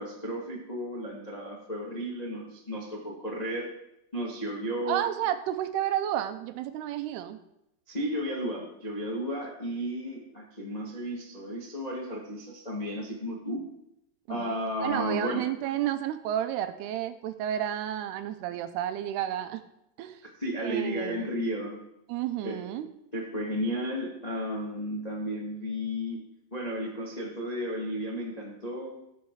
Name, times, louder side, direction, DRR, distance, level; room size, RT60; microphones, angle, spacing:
voice 1, 0.0-3.7 4.1-5.0 7.9-13.6 14.3-15.4 20.4-21.8 22.4-22.6 23.1-26.2 26.5-28.9, equal, 60° left, -3 dB, 0.4 m, -33 dB
voice 2, 4.9-7.4 14.3-14.6 14.8-19.6 20.0-20.2 20.6-21.3 22.1-22.9, right 11 dB, 80° right, 10 dB, 2.7 m, -31 dB
17.0 x 7.4 x 4.8 m, 0.83 s
omnidirectional pair, 4.8 m